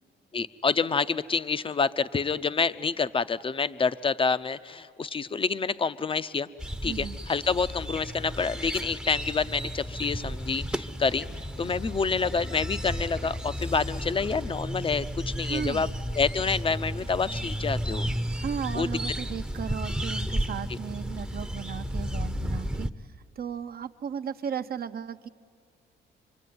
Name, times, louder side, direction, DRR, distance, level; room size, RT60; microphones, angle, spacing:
voice 1, 0.3-6.5 6.8-11.3 11.6-15.9 16.2-18.1 18.7-18.9 20.7-20.8, left 5 dB, 25° left, 14 dB, 0.7 m, -28 dB
sound 1, 6.6-22.9, equal, 5° right, 0.8 m, -33 dB
voice 2, 6.8-7.2 15.4-15.9 18.4-25.3, right 8 dB, 50° right, 10 dB, 0.8 m, -35 dB
25.0 x 24.5 x 9.5 m, 2.2 s
cardioid pair, 90°, 20 cm